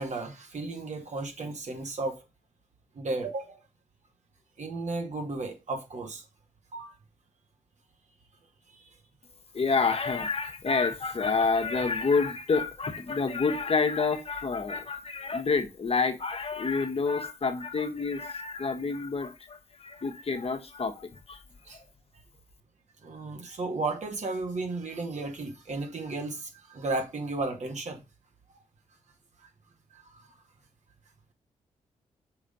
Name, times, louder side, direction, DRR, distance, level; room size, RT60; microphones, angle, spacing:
voice 1, 0.0-2.2 2.9-3.6 4.6-6.2 6.7-6.9 8.7-8.9 21.7-21.8 23.0-28.0 29.9-30.3, right 3 dB, 60° right, 2.4 m, -34 dB
voice 2, 9.5-21.4, left 4 dB, 45° left, 1.4 m, -28 dB
6.6 x 4.2 x 5.3 m
supercardioid pair, 50°, 13 cm